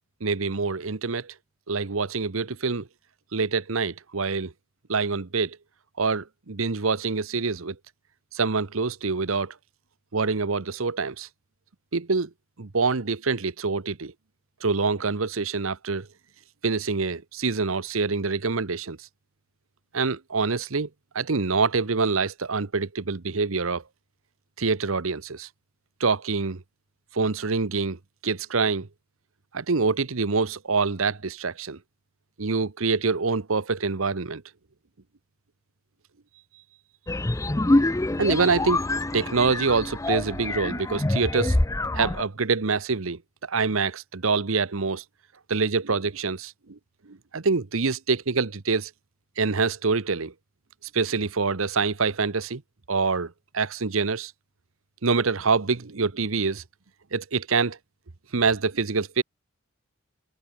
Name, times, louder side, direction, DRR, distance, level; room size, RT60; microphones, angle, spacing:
voice 1, 0.2-1.3 1.7-2.9 3.3-4.5 4.9-5.6 6.0-7.8 8.3-9.5 10.1-11.3 11.9-12.3 12.6-14.1 14.6-16.1 16.6-19.0 19.9-20.9 21.1-23.8 24.6-25.5 26.0-26.6 27.1-28.9 29.5-31.8 32.4-34.4 38.2-38.8 39.1-41.6 41.9-43.2 43.5-45.0 45.5-46.8 47.1-48.9 49.4-50.3 50.9-52.6 52.9-54.3 55.0-56.6 57.1-57.8 58.3-59.2, right 4 dB, 70° right, 1.0 m, -25 dB
sound 1, 37.1-42.2, left 2 dB, 15° left, 0.5 m, -25 dB
open air
head